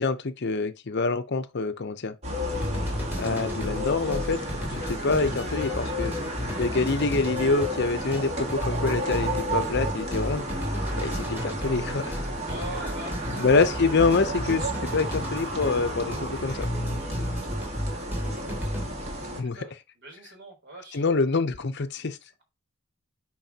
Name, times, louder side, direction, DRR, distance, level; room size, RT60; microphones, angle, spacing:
voice 1, 0.0-2.1 3.2-4.4 4.7-6.1 6.6-10.5 11.0-12.2 13.4-16.7 19.4-19.6 20.9-22.2, left 3 dB, 50° left, 0.7 m, -26 dB
sound 1, 2.2-19.4, equal, 30° right, 1.8 m, -33 dB
sound 2, 2.5-18.9, equal, 10° right, 2.8 m, -33 dB
voice 2, 12.5-14.2 17.5-17.8 19.5-21.0, right 1 dB, 55° right, 3.6 m, -43 dB
9.1 x 4.7 x 2.8 m
head